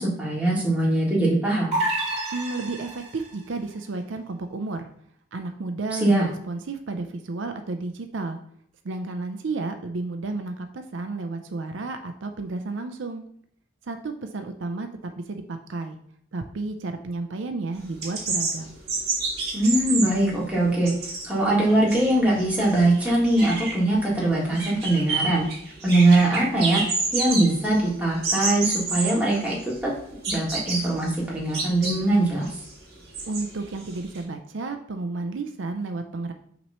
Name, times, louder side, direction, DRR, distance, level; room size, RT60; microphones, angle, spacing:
voice 1, 0.0-1.7 5.9-6.2 19.5-20.9 21.2-25.4 25.8-26.8 27.1-29.9 30.3-32.5, right 1 dB, 5° right, -5 dB, 1.7 m, -22 dB
sound 1, 1.7-3.3, right 1 dB, 30° right, 2.6 m, -28 dB
voice 2, 2.3-4.9 5.3-8.4 8.8-13.2 13.8-16.0 16.3-18.8 33.3-36.3, right 3 dB, 70° right, 6 dB, 0.5 m, -32 dB
sound 2, 17.8-34.2, right 3 dB, 55° right, 2.4 m, -30 dB
6.0 x 3.0 x 5.4 m, 0.64 s
head